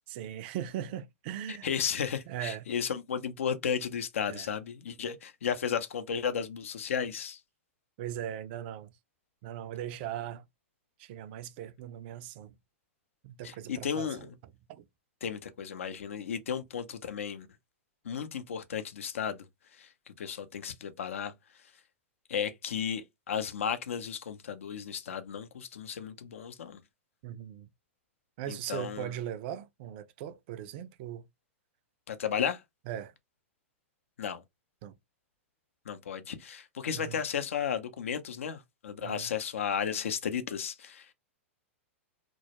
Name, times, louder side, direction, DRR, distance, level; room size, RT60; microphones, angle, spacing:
voice 1, 0.1-1.7 2.3-2.6 4.3-4.5 8.0-8.9 9.4-10.4 11.0-12.5 13.2-14.3 14.7-14.9 27.2-27.7 28.4-31.3 32.9-33.1 34.8-34.9 36.9-37.2 39.0-39.3, right 11 dB, 50° right, 0.3 m, -39 dB
voice 2, 1.5-7.4 13.4-14.3 15.2-17.5 18.0-19.4 19.7-21.3 22.3-26.8 28.5-29.1 32.1-32.6 34.2-34.4 35.9-41.1, left 7 dB, 75° left, 0.5 m, -34 dB
2.2 x 2.0 x 2.8 m
hypercardioid pair, 110°, 7 cm